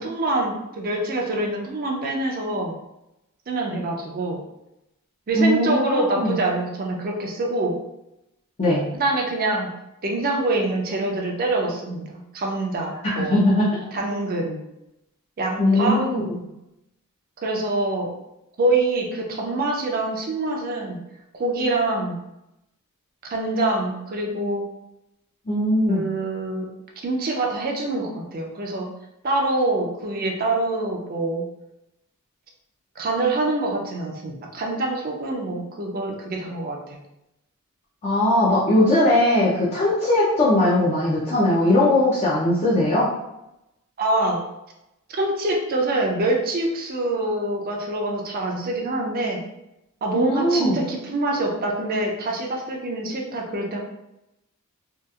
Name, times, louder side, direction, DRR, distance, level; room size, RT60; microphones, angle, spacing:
voice 1, 0.0-2.7 3.5-4.4 5.3-7.8 8.9-9.7 10.0-13.4 13.9-14.6 15.4-16.0 17.4-18.1 18.6-21.0 21.4-22.2 23.2-24.6 25.9-26.7 27.0-28.9 29.2-31.4 33.0-37.0 44.0-44.4 45.1-49.4 50.0-53.8, right 2 dB, 40° right, 1 dB, 0.4 m, -25 dB
voice 2, 5.3-6.4 8.6-8.8 13.0-13.8 15.6-16.4 25.5-26.1 38.0-43.1 50.1-50.9, left 1 dB, 30° left, -7 dB, 0.4 m, -20 dB
2.7 x 2.3 x 2.3 m, 0.89 s
head